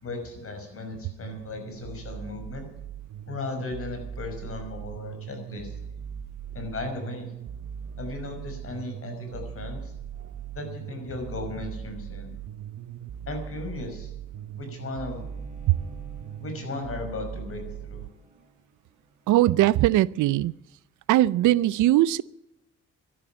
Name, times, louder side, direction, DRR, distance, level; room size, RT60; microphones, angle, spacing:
voice 1, 0.0-2.7 3.3-5.7 6.5-7.3 8.0-9.9 10.5-12.4 13.3-14.1 14.6-15.2 16.4-18.0, left 2 dB, 45° left, 5.8 m, -36 dB
sound 1, 1.2-18.1, right 8 dB, 55° right, 0.9 m, -39 dB
Bowed string instrument, 14.9-20.2, equal, 25° right, 3.8 m, -52 dB
voice 2, 19.3-20.5 21.1-22.2, right 15 dB, 80° right, 0.5 m, -20 dB
13.0 x 11.0 x 9.1 m
cardioid pair, 90°, 30 cm